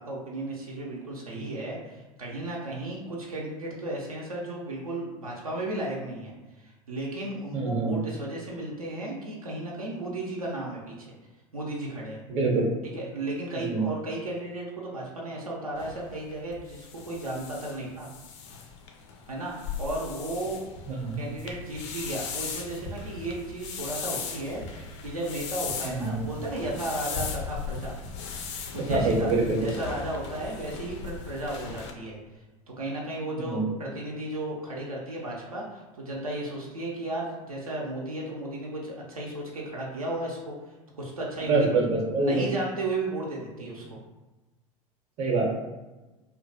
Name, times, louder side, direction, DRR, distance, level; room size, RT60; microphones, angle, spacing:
voice 1, 0.0-11.1 11.5-12.2 12.9-18.1 19.2-20.7 21.2-28.0 28.7-29.3 29.6-32.4 32.8-40.5 41.0-41.7 42.2-44.0, right 1 dB, 80° right, -4 dB, 0.5 m, -34 dB
voice 2, 7.5-8.0 12.3-12.7 13.5-13.8 20.9-21.2 25.8-26.2 28.8-29.6 33.4-33.7 41.4-42.5 45.2-45.5, right 3 dB, 40° right, 0 dB, 0.6 m, -25 dB
sound 1, 15.8-31.9, left 5 dB, 55° left, 0.4 m, -37 dB
2.5 x 2.2 x 2.5 m, 1.1 s
figure-of-eight pair, 80°, 18 cm